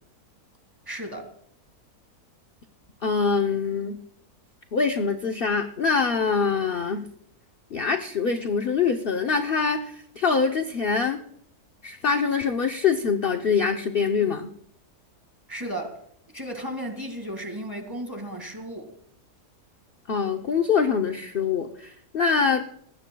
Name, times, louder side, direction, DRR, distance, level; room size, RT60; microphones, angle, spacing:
voice 1, 0.9-1.3 15.5-16.0 16.3-18.9, right 1 dB, 15° right, 2.1 m, -34 dB
voice 2, 3.0-4.0 4.7-7.1 7.7-11.2 11.8-14.5 20.1-22.6, left 5 dB, 45° left, 0.9 m, -24 dB
20.0 x 16.0 x 2.3 m
omnidirectional pair, 1.6 m